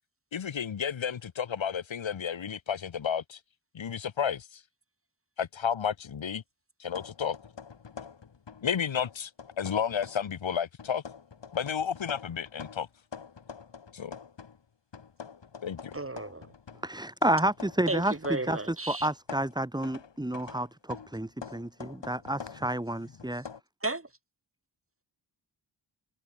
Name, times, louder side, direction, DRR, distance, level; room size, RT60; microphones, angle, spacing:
voice 1, 0.3-3.4 3.7-4.6 5.4-6.4 6.8-7.4 8.6-9.3 9.6-11.0 11.5-12.9 13.9-14.1 15.6-16.0, left 7 dB, 90° left, 1.9 m, -32 dB
sound 1, 6.9-8.7 9.0-10.3 10.8-14.6 14.9-18.7 19.0-23.6, left 6 dB, 70° left, 2.6 m, -46 dB
voice 2, 15.9-16.5 17.9-19.1 23.8-24.1, right 2 dB, 30° right, 6.2 m, -33 dB
voice 3, 16.8-23.4, right 1 dB, 10° right, 1.7 m, -30 dB
cardioid pair, 55°, 45 cm